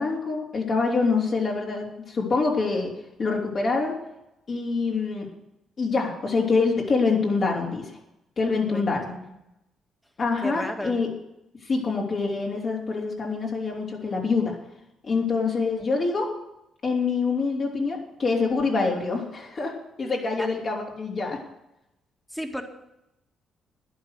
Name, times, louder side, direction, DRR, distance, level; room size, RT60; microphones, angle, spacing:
voice 1, 0.0-2.9 3.2-3.9 4.5-5.3 5.8-7.9 8.4-9.1 10.2-11.1 11.6-14.6 15.0-16.3 16.8-21.4, left 4 dB, 50° left, -2 dB, 3.4 m, -25 dB
voice 2, 8.6-9.2 10.4-11.0 20.4-20.5 22.3-22.6, equal, 5° left, 4 dB, 2.0 m, -33 dB
12.0 x 10.0 x 6.5 m, 0.86 s
cardioid pair, 90°, 0 cm